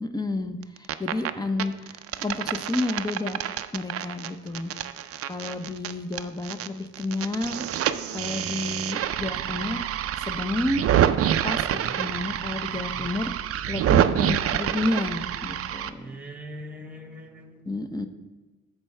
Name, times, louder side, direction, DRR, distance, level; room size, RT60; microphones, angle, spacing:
voice 1, 0.0-3.4 3.7-4.7 5.3-9.9 10.2-10.8 11.4-13.3 13.7-16.2 17.7-18.1, left 2 dB, 15° left, 8 dB, 0.7 m, -31 dB
sound 1, 0.6-1.3 1.6-6.7 6.9-15.9, right 10 dB, 50° right, 0.4 m, -27 dB
voice 2, 11.7-12.1 12.7-13.1 15.9-17.7, right 1 dB, 5° right, 4 dB, 1.3 m, -42 dB
13.0 x 4.7 x 3.3 m, 1.2 s
cardioid pair, 90°, 30 cm